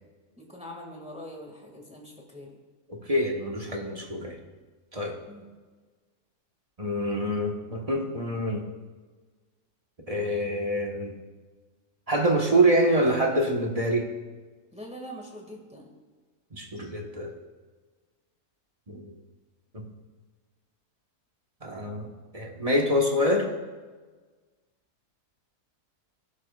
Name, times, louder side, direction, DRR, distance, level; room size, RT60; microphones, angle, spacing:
voice 1, 0.4-2.6 5.3-5.5 14.7-15.9, equal, 5° right, 0 dB, 2.0 m, -43 dB
voice 2, 2.9-4.4 4.9-5.2 6.8-8.6 10.1-11.1 12.1-14.1 16.5-17.3 18.9-19.1 19.7-19.8 21.6-22.1 22.3-23.5, equal, 25° right, 0 dB, 1.5 m, -26 dB
21.0 x 11.5 x 2.5 m, 1.4 s
omnidirectional pair, 1.6 m